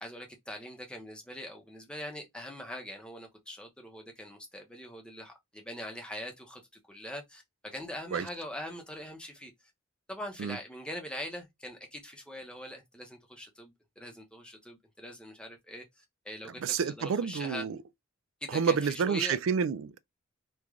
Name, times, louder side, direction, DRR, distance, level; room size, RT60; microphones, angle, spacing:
voice 1, 0.0-6.6 6.9-9.5 10.1-17.7 18.4-19.4, left 1 dB, 5° left, 0.8 m, -42 dB
voice 2, 16.6-17.8 18.5-20.0, right 6 dB, 65° right, 0.3 m, -29 dB
3.1 x 2.5 x 3.6 m
head